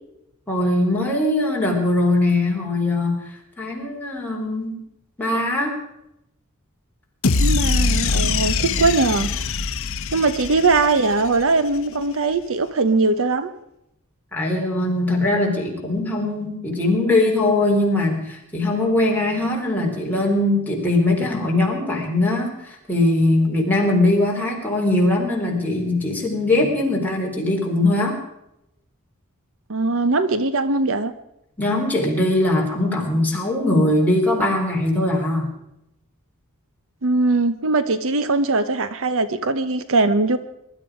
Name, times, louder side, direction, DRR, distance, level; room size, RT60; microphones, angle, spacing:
voice 1, 0.5-3.2 3.6-4.8 5.2-5.8 14.3-28.2 31.6-35.5, left 2 dB, 10° left, -2 dB, 4.0 m, -21 dB
sound 1, 7.2-11.6, left 4 dB, 65° left, 0.9 m, -23 dB
voice 2, 7.4-9.3 10.1-13.5 29.7-31.1 37.0-40.4, right 3 dB, 65° right, 12 dB, 0.9 m, -20 dB
23.0 x 12.5 x 5.0 m, 0.83 s
head